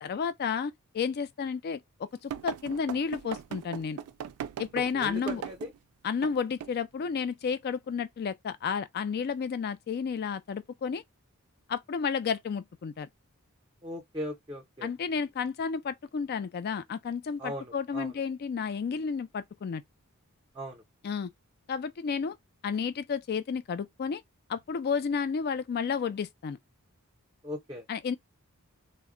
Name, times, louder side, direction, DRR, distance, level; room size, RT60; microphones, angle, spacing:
voice 1, 0.0-4.0 4.6-5.4 6.0-11.0 11.7-13.1 14.8-19.8 21.0-21.3 21.7-22.4 22.6-24.2 24.5-26.6 27.9-28.2, left 6 dB, 45° left, 0.3 m, -32 dB
sound 1, 2.3-5.8 6.2-6.3 6.6-6.8, right 9 dB, 80° right, 0.3 m, -38 dB
voice 2, 4.9-5.7 13.8-14.9 17.4-18.1 20.6-20.8 27.4-27.8, equal, 20° right, 0.6 m, -38 dB
2.1 x 2.0 x 3.6 m
head